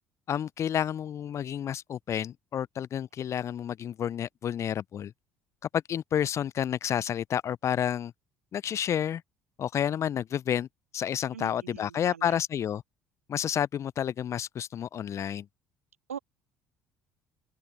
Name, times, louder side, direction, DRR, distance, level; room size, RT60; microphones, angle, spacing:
voice 1, 0.3-5.1 5.7-8.1 8.5-9.2 9.6-10.7 10.9-12.8 13.3-15.5, left 9 dB, 40° left, 0.6 m, -30 dB
voice 2, 11.3-12.4 16.1-16.2, right 8 dB, 85° right, 0.7 m, -41 dB
open air
figure-of-eight pair, 55°, 7 cm